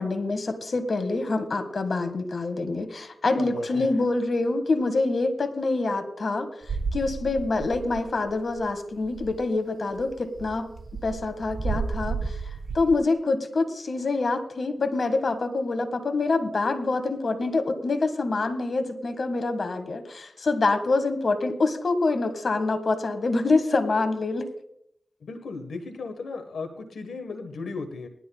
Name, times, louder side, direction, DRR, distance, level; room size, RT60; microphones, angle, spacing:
voice 1, 0.0-6.5 6.9-10.7 11.0-12.2 12.7-24.5, left 3 dB, 65° left, 8 dB, 1.7 m, -26 dB
voice 2, 3.4-3.9 25.2-28.1, left 4 dB, 90° left, 6 dB, 1.2 m, -36 dB
sound 1, 6.6-8.3 8.6-8.7 9.0-9.5 10.0-13.0, right 4 dB, 75° right, 0.8 m, -32 dB
20.0 x 12.0 x 2.3 m, 0.74 s
cardioid pair, 40°, 0 cm